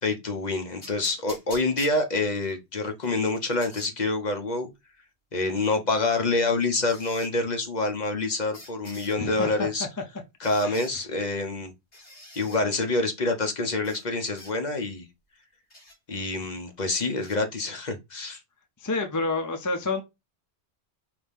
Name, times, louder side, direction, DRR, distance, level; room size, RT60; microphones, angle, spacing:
voice 1, 0.0-4.7 5.3-9.9 10.4-11.7 12.4-15.0 16.1-18.4, left 2 dB, 45° left, 0.9 m, -27 dB
sound 1, 0.8-2.5 3.0-3.9 5.4-5.5 6.9-7.3 8.5-9.2 10.4-10.9 11.9-12.6 13.8-14.1 14.4-14.5 15.7-16.0 17.2-17.4, left 1 dB, 85° left, 3.3 m, -46 dB
voice 2, 9.2-9.7 10.6-10.8 18.8-20.0, left 3 dB, 25° left, 0.5 m, -28 dB
5.0 x 2.7 x 3.5 m
omnidirectional pair, 1.1 m